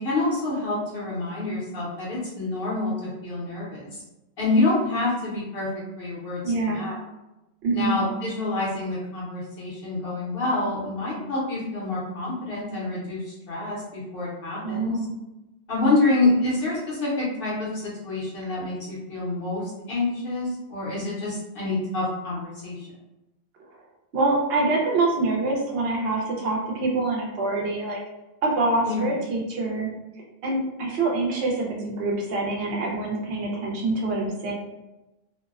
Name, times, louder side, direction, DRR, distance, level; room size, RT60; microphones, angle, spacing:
voice 1, 0.0-3.9 4.4-5.7 6.0-6.9 7.7-15.0 15.7-22.9 28.8-29.0, left 2 dB, 65° left, -6 dB, 0.9 m, -27 dB
voice 2, 6.4-6.9 7.6-8.0 14.6-15.1 24.1-28.0 28.4-29.9 30.4-34.5, right 2 dB, 70° right, -1 dB, 0.9 m, -25 dB
2.6 x 2.0 x 2.4 m, 0.98 s
omnidirectional pair, 1.0 m